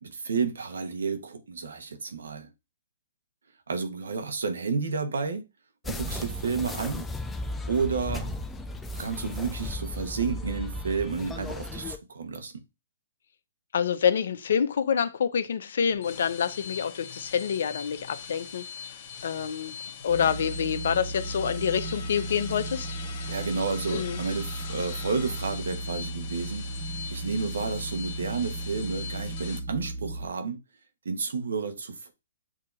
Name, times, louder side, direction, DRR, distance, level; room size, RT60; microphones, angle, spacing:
voice 1, 0.0-2.5 3.7-5.4 5.8-7.0 7.7-8.3 8.9-12.5 23.3-26.6 27.1-30.6 31.0-32.1, right 5 dB, 80° right, 1.0 m, -31 dB
sound 1, 5.8-12.0, left 1 dB, 10° left, 0.4 m, -35 dB
voice 2, 13.7-18.7 19.2-19.7 20.0-22.9 23.9-24.2, left 7 dB, 65° left, 0.6 m, -27 dB
sound 2, 15.9-29.6, left 6 dB, 40° left, 1.3 m, -41 dB
sound 3, 20.1-30.3, right 2 dB, 30° right, 0.8 m, -36 dB
7.3 x 2.8 x 2.5 m
hypercardioid pair, 140°, 0 cm